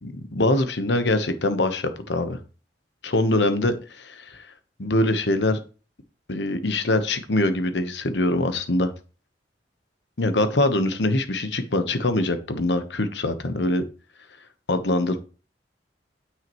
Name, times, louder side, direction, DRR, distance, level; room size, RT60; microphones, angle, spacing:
voice 1, 0.0-2.4 3.0-4.4 4.8-5.6 6.3-8.9 10.2-13.8 14.7-15.2, left 2 dB, 75° left, 9 dB, 1.1 m, -23 dB
9.4 x 8.0 x 3.1 m, 0.36 s
head